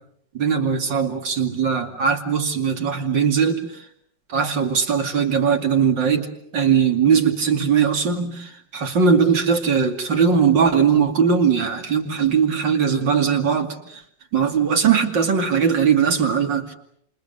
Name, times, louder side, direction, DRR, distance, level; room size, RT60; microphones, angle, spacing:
voice 1, 0.3-3.7 4.3-6.3 6.5-14.0 14.3-16.7, right 6 dB, 80° right, 3.2 m, -20 dB
28.0 x 28.0 x 6.9 m
omnidirectional pair, 2.0 m